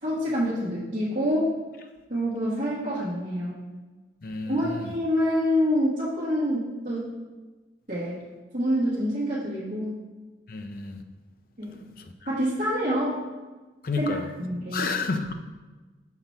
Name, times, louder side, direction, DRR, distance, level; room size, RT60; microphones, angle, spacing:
voice 1, 0.0-1.5 2.1-3.6 4.5-7.1 7.9-8.2 8.5-10.0 11.6-11.8 12.3-13.2 14.0-14.9, equal, 45° right, -11 dB, 1.5 m, -26 dB
voice 2, 4.2-4.6 10.5-11.0 13.8-14.2 14.7-15.3, left 4 dB, 50° left, 6 dB, 0.5 m, -30 dB
5.9 x 4.0 x 5.7 m, 1.3 s
head